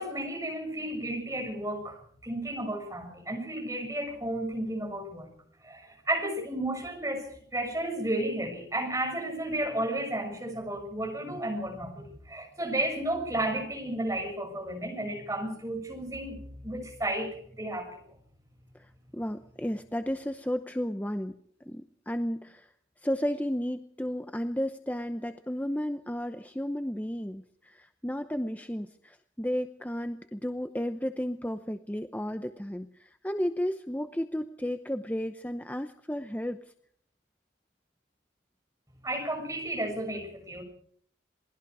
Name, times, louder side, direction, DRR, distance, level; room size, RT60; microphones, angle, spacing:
voice 1, 0.0-5.3 5.6-18.0 39.0-40.6, right 1 dB, 15° right, 2 dB, 6.6 m, -33 dB
voice 2, 18.7-21.3 21.6-22.7 23.0-36.6, equal, 10° left, 8 dB, 0.8 m, -33 dB
27.5 x 20.5 x 4.9 m, 0.62 s
head